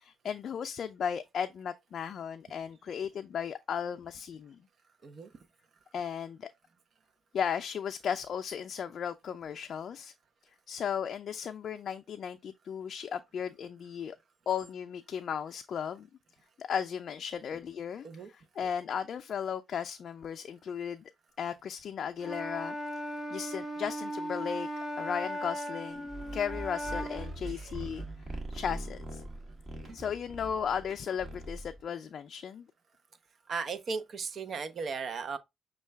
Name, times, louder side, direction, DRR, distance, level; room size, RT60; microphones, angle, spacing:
voice 1, 0.0-4.6 5.9-6.5 7.3-10.1 10.7-14.2 14.5-16.1 16.6-21.1 21.4-22.7 23.3-24.7 25.0-29.2 29.9-32.7, left 7 dB, 60° left, 0.4 m, -36 dB
Wind instrument woodwind instrument, 22.2-27.4, equal, 15° right, 1.2 m, -37 dB
sound 1, 26.1-31.8, right 2 dB, 35° right, 1.6 m, -42 dB
voice 2, 27.4-27.8 33.5-35.4, right 5 dB, 50° right, 0.6 m, -36 dB
6.3 x 2.3 x 3.3 m
cardioid pair, 90°, 0 cm